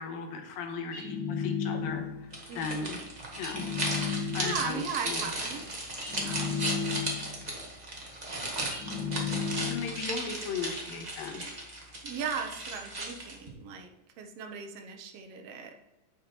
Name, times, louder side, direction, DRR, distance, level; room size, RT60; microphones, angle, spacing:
voice 1, 0.0-2.3 2.6-3.0 3.3-3.6 4.3-5.2 9.7-11.4, left 5 dB, 90° left, 4 dB, 2.9 m, -36 dB
sound 1, 0.9-2.3 3.4-4.8 6.0-7.4 8.7-10.1, left 6 dB, 50° left, 1.5 m, -33 dB
sound 2, 2.3-13.5, right 1 dB, 55° right, 0.4 m, -36 dB
voice 2, 2.5-3.0 4.4-5.6 6.1-6.5 12.0-13.9 14.2-15.7, right 6 dB, 90° right, 4 dB, 1.3 m, -37 dB
9.0 x 6.6 x 4.4 m, 1.0 s
omnidirectional pair, 4.0 m